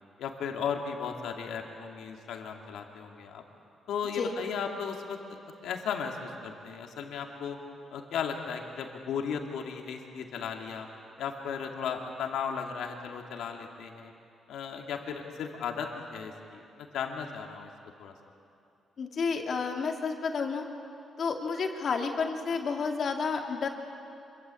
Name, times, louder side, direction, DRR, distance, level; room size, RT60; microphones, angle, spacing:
voice 1, 0.2-3.4 3.9-5.4 5.6-7.6 7.9-10.9 11.2-14.1 14.5-17.7 18.0-18.1, left 6 dB, 85° left, 3 dB, 2.7 m, -36 dB
voice 2, 19.0-20.7 21.2-23.7, left 5 dB, 55° left, 3 dB, 2.6 m, -30 dB
26.5 x 23.5 x 8.6 m, 2.7 s
cardioid pair, 110°, 0 cm